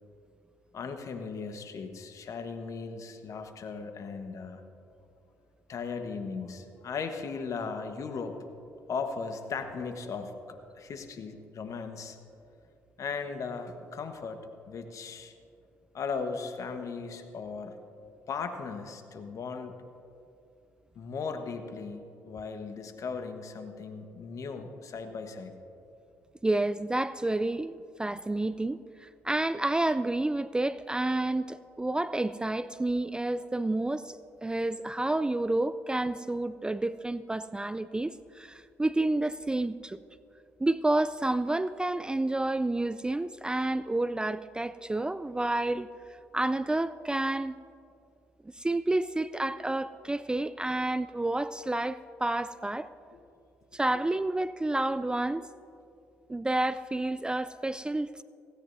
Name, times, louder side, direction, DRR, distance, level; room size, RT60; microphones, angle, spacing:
voice 1, 0.7-4.6 5.7-8.4 8.9-12.2 13.0-14.4 14.7-15.3 15.9-17.8 18.3-19.8 20.9-25.5 53.9-54.1, left 5 dB, 55° left, 7 dB, 1.3 m, -37 dB
voice 2, 26.4-34.2 34.4-40.0 40.6-45.9 46.3-47.6 48.6-52.9 53.7-55.4 56.3-58.1, right 2 dB, 15° right, 14 dB, 0.4 m, -29 dB
17.0 x 16.5 x 2.7 m, 2.6 s
hypercardioid pair, 50°, 7 cm